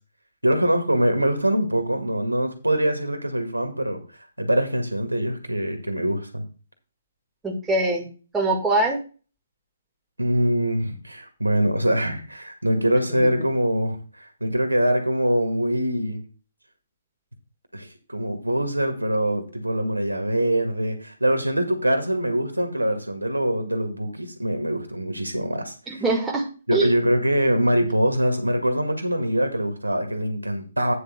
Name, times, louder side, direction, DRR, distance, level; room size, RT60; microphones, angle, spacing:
voice 1, 0.4-4.0 4.4-6.4 10.2-16.2 17.7-26.0 26.7-30.9, equal, 85° right, 5 dB, 1.8 m, -23 dB
voice 2, 7.4-8.1 8.3-9.0 13.2-13.3 25.9-26.9, right 2 dB, 10° right, -1 dB, 1.7 m, -23 dB
9.1 x 4.0 x 6.5 m, 0.35 s
figure-of-eight pair, 130°, 0 cm